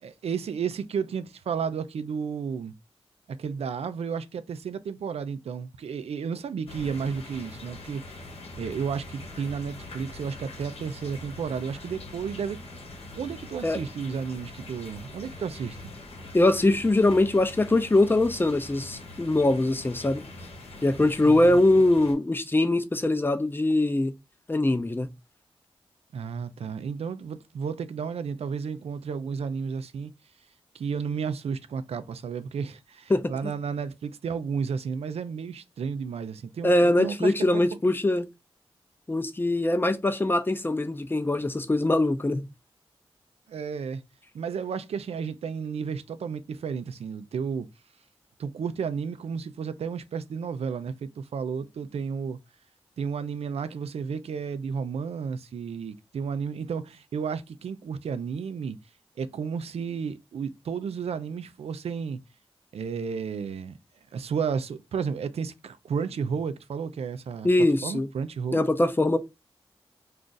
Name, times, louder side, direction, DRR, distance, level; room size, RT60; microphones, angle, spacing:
voice 1, 0.0-2.7 3.4-8.2 8.6-12.6 13.1-15.8 21.2-21.6 26.1-30.1 30.7-37.3 43.5-44.0 44.3-47.7 48.4-52.4 53.0-58.8 59.2-62.2 62.7-63.8 64.1-67.5 67.8-68.6, right 6 dB, 80° right, 0.4 m, -32 dB
sound 1, 6.7-22.1, left 2 dB, 80° left, 0.9 m, -43 dB
voice 2, 16.3-20.2 20.8-24.1 24.5-25.1 33.1-33.3 36.6-38.3 39.1-42.4 67.4-68.1 68.5-69.2, left 2 dB, 20° left, 0.5 m, -22 dB
2.4 x 2.4 x 3.8 m
cardioid pair, 50°, 10 cm